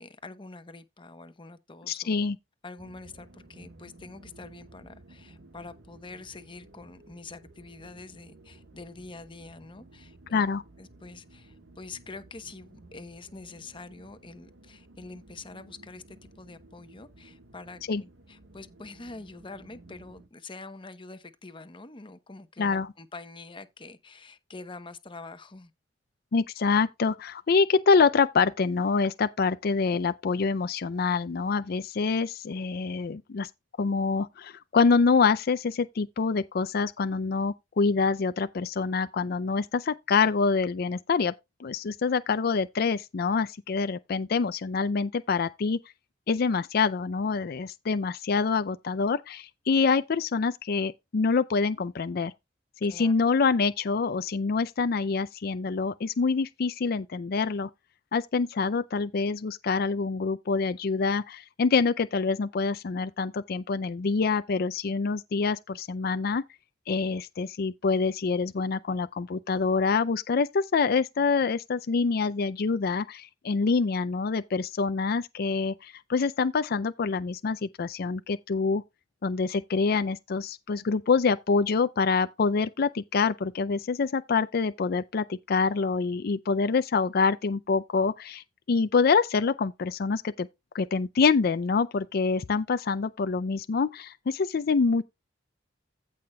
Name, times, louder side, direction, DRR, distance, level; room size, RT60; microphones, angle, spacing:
voice 1, 0.0-2.2 2.6-10.5 10.8-25.7 52.9-53.1, left 3 dB, 25° left, 0.9 m, -45 dB
voice 2, 1.9-2.4 10.3-10.6 17.9-18.0 22.6-22.9 26.3-33.5 33.8-41.3 41.6-45.8 46.3-52.3 52.8-57.7 58.1-66.4 66.9-78.8 79.2-90.5 90.7-95.0, left 4 dB, 55° left, 0.4 m, -26 dB
sound 1, 2.8-20.3, right 2 dB, 85° right, 1.4 m, -54 dB
15.5 x 5.7 x 2.3 m
head